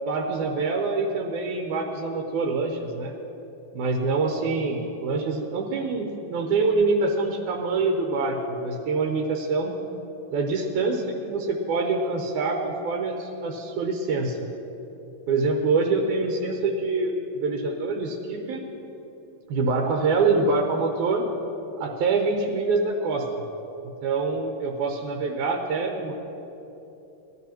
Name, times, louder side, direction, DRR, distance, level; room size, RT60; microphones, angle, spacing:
voice 1, 0.1-3.1 3.7-9.8 10.3-14.4 15.3-17.2 17.4-18.6 19.5-21.2 21.8-23.2 24.0-26.1, right 3 dB, 85° right, 2 dB, 2.3 m, -25 dB
18.0 x 13.0 x 2.9 m, 3.0 s
omnidirectional pair, 3.4 m